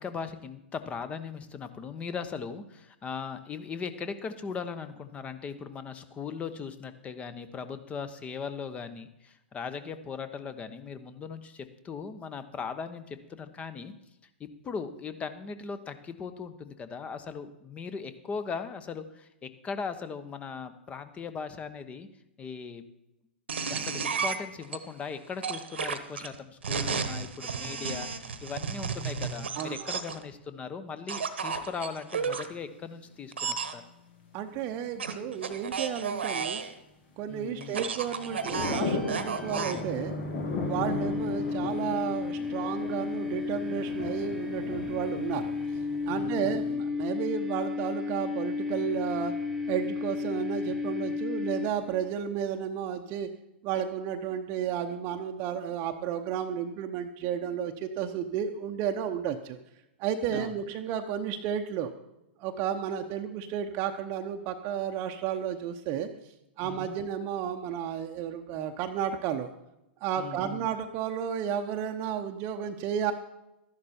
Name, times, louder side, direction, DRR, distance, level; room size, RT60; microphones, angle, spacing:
voice 1, 0.0-13.9 14.4-22.1 22.4-22.8 23.7-33.8 37.3-37.8 46.1-46.9 60.3-60.6 66.6-66.9 70.2-70.7, left 5 dB, 20° left, 11 dB, 1.0 m, -39 dB
sound 1, 23.5-24.8 25.4-30.2 31.1-32.5 33.3-33.7 35.0-36.7 37.6-39.8, right 6 dB, 80° right, 1.2 m, -33 dB
voice 2, 29.6-29.9 34.3-36.6 37.2-40.1 40.6-45.5 46.1-49.3 49.7-53.3 53.6-59.6 60.0-61.9 62.4-66.1 66.6-69.5 70.0-73.1, right 9 dB, 40° right, 5 dB, 0.8 m, -32 dB
sound 2, 32.2-32.7 33.6-33.7 34.1-34.9 35.3-35.4 35.7-35.8 36.1-36.5 38.2-46.7, left 4 dB, 60° left, 3.0 m, -37 dB
sound 3, 38.1-52.1, left 4 dB, ahead, 1.4 m, -33 dB
13.0 x 11.0 x 4.4 m, 0.89 s
hypercardioid pair, 110°, 6 cm